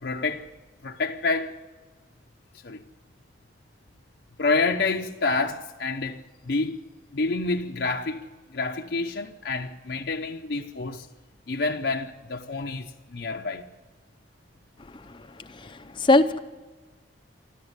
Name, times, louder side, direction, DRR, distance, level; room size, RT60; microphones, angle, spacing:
voice 1, 0.0-0.5 0.8-1.5 2.6-2.8 4.4-6.8 7.1-8.2 8.5-11.1 11.5-13.7, left 3 dB, 60° left, 0.7 m, -28 dB
voice 2, 14.9-16.4, left 2 dB, 25° left, 0.6 m, -23 dB
26.0 x 13.5 x 8.1 m
head